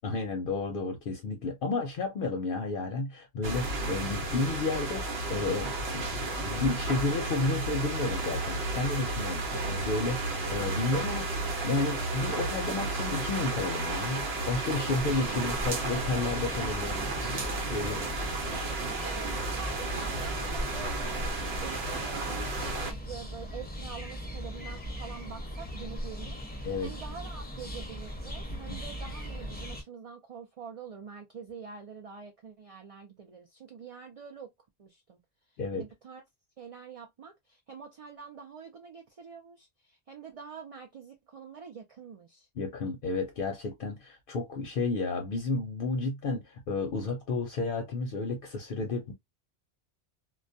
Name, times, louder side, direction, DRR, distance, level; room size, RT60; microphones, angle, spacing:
voice 1, 0.0-17.4 17.7-18.0 26.6-26.9 35.6-35.9 42.6-49.1, left 3 dB, 65° left, 0.7 m, -32 dB
sound 1, 3.4-22.9, right 2 dB, 80° right, 1.0 m, -33 dB
sound 2, 15.0-29.8, equal, 15° left, 0.4 m, -39 dB
voice 2, 15.3-15.8 17.9-34.5 34.8-35.2 35.7-36.2 36.6-42.5, right 6 dB, 50° right, 0.4 m, -46 dB
2.3 x 2.1 x 2.5 m
omnidirectional pair, 1.1 m